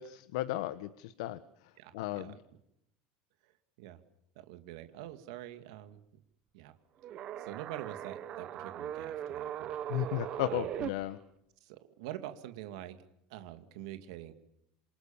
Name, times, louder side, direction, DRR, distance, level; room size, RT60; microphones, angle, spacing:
voice 1, 0.0-1.4 1.9-2.3 9.9-11.2, left 14 dB, 70° left, 13 dB, 1.2 m, -35 dB
voice 2, 1.8-2.4 3.4-3.5 3.8-4.0 4.4-6.2 6.5-6.7 7.1-9.7 10.4-10.7 11.6-14.3, right 13 dB, 70° right, 9 dB, 2.4 m, -46 dB
sound 1, 7.0-10.9, right 11 dB, 30° right, 1.2 m, -39 dB
27.5 x 27.5 x 7.3 m, 0.80 s
cardioid pair, 180°, 3 cm